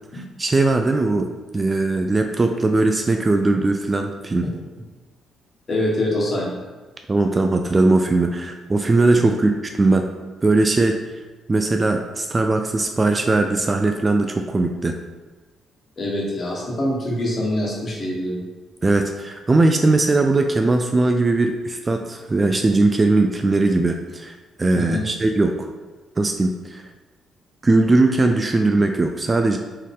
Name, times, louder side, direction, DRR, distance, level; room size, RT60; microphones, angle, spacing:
voice 1, 0.1-4.5 7.1-10.1 10.4-11.0 11.5-14.9 18.8-24.3 24.6-25.7 26.2-26.8 27.6-29.6, right 2 dB, 25° right, 4 dB, 0.3 m, -19 dB
voice 2, 5.7-6.5 9.1-9.3 16.0-18.4 24.7-25.0, left 1 dB, 40° left, -3 dB, 1.4 m, -24 dB
4.5 x 3.1 x 3.6 m, 1.2 s
cardioid pair, 90°, 0 cm